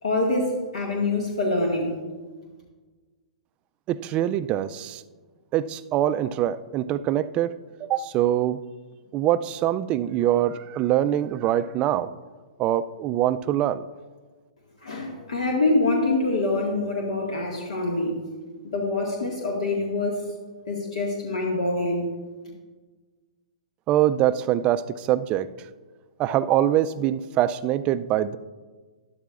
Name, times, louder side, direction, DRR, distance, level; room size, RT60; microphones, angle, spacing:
voice 1, 0.0-2.0 14.8-18.2 18.7-20.3 20.7-22.1, left 2 dB, 75° left, -1 dB, 1.8 m, -25 dB
voice 2, 3.9-5.0 5.5-8.6 9.1-12.1 12.6-13.9 23.9-25.5 26.2-28.4, right 12 dB, 30° right, 13 dB, 0.4 m, -24 dB
12.5 x 11.5 x 2.5 m, 1.4 s
hypercardioid pair, 125°, 4 cm